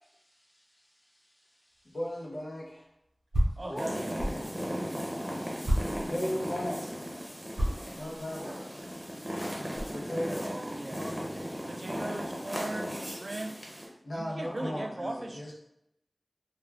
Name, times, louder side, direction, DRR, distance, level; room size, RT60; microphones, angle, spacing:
voice 1, 0.0-2.0 3.6-3.9 8.4-8.6 10.4-10.8 14.4-14.9, equal, 25° left, -4 dB, 0.8 m, -47 dB
sound 1, 1.7-1.8 2.2-4.4 4.9-5.0 5.6-6.5 7.4-9.9, equal, 85° right, 0.8 m, -31 dB
voice 2, 1.9-2.9 6.1-6.8 8.0-8.9 9.9-10.5 10.9-12.2 14.0-15.5, left 1 dB, 85° left, -4 dB, 0.7 m, -37 dB
voice 3, 3.6-4.2 10.4-11.0 11.7-13.6 14.1-15.4, right 2 dB, 60° right, 4 dB, 0.3 m, -38 dB
sound 2, 3.8-13.9, equal, 10° right, 0.7 m, -37 dB
2.3 x 2.3 x 3.3 m, 0.80 s
wide cardioid pair, 55°, 0 cm